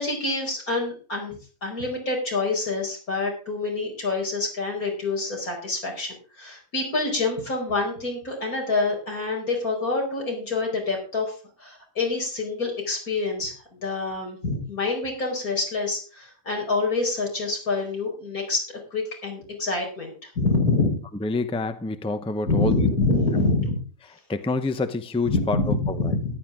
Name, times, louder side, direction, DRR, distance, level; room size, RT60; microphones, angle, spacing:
voice 1, 0.0-18.6 18.9-21.0 22.5-23.8 25.3-26.4, left 3 dB, 85° left, 0 dB, 5.2 m, -26 dB
voice 2, 21.2-22.7 24.3-26.1, left 2 dB, 5° left, 10 dB, 0.6 m, -27 dB
14.0 x 11.0 x 3.7 m, 0.37 s
omnidirectional pair, 1.5 m